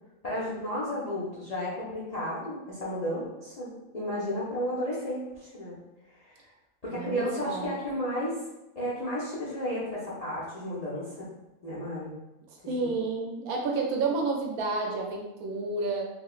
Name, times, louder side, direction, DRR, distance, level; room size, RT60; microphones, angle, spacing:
voice 1, 0.2-5.8 6.1-6.4 6.8-8.4 8.7-11.3 11.6-12.1 12.8-12.9, equal, 60° left, -8 dB, 0.4 m, -33 dB
voice 2, 6.9-7.7 12.7-16.1, right 3 dB, 70° right, 1 dB, 1.0 m, -30 dB
3.1 x 3.0 x 2.3 m, 0.97 s
omnidirectional pair, 1.7 m